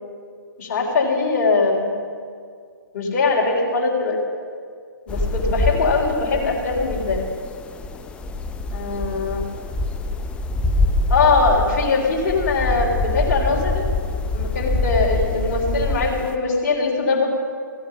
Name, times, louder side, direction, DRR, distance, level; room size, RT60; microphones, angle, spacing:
voice 1, 0.6-1.9 2.9-4.2 5.1-7.3 8.7-9.4 11.1-13.8 14.3-17.3, left 3 dB, 40° left, -3 dB, 3.7 m, -21 dB
sound 1, 5.1-16.3, left 2 dB, 10° left, 0.6 m, -25 dB
15.5 x 15.5 x 5.6 m, 2.1 s
figure-of-eight pair, 125°, 11 cm